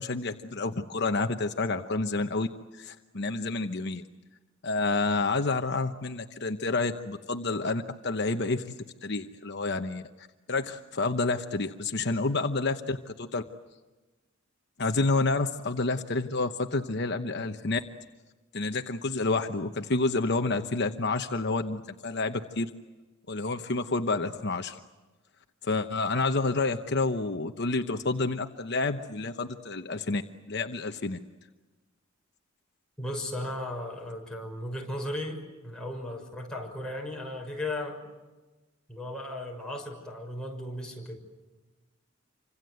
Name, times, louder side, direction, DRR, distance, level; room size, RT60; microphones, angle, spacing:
voice 1, 0.0-2.5 2.7-4.0 4.6-8.7 9.0-13.4 14.8-17.8 18.5-22.7 23.3-24.8 25.6-30.2 30.5-31.2, left 3 dB, 55° left, 7 dB, 1.0 m, -29 dB
voice 2, 33.0-38.0 38.9-41.1, left 1 dB, 5° left, -1 dB, 6.4 m, -36 dB
28.5 x 26.0 x 7.9 m, 1.2 s
head